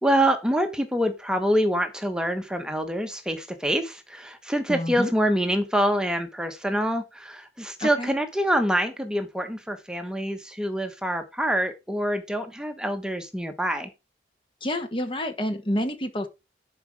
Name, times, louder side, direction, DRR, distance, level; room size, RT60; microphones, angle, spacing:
voice 1, 0.0-13.9, equal, 5° right, 1.1 m, -26 dB
voice 2, 4.7-5.1 7.8-8.1 14.6-16.3, left 1 dB, 30° left, 1.2 m, -28 dB
11.5 x 5.1 x 4.7 m
head